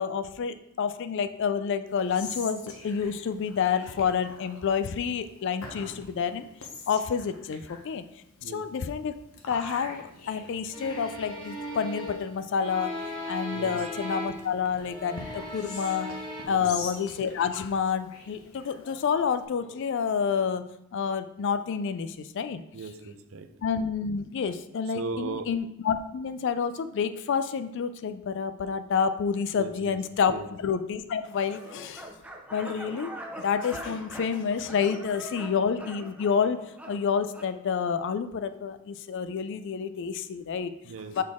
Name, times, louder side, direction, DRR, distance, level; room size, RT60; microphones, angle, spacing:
voice 1, 0.0-6.5 6.9-8.0 8.5-9.1 9.5-13.0 13.3-16.1 16.5-20.6 20.9-22.6 23.6-30.3 30.6-32.1 32.5-33.1 33.4-36.6 36.9-40.7 41.2-41.3, left 6 dB, 55° left, 11 dB, 0.3 m, -29 dB
Whispering, 1.9-19.4, left 3 dB, 70° left, 0.9 m, -45 dB
sound 1, 10.7-14.5 14.8-16.4, left 1 dB, 20° left, 1.0 m, -37 dB
voice 2, 16.4-16.8 22.7-23.5 24.9-25.5 29.6-30.5 40.8-41.1, right 4 dB, 60° right, 7 dB, 0.5 m, -37 dB
sound 2, 31.5-37.5, right 1 dB, 5° right, 0.5 m, -43 dB
6.4 x 4.0 x 3.6 m, 0.84 s
head